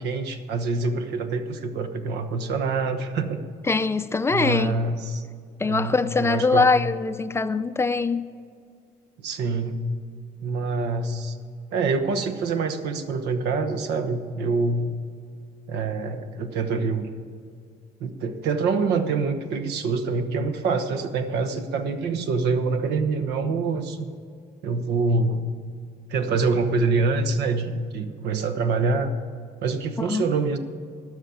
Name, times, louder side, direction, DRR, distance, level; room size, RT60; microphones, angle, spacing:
voice 1, 0.0-3.4 4.3-5.3 5.6-6.7 9.2-9.8 10.4-11.4 11.7-15.0 15.7-17.1 18.0-24.1 24.6-25.5 26.1-29.1 29.6-30.6, right 4 dB, 80° right, 1.1 m, -25 dB
voice 2, 3.7-4.8 5.6-8.3 30.0-30.2, left 4 dB, 15° left, 0.5 m, -22 dB
12.5 x 6.5 x 8.6 m
cardioid pair, 110°, 17 cm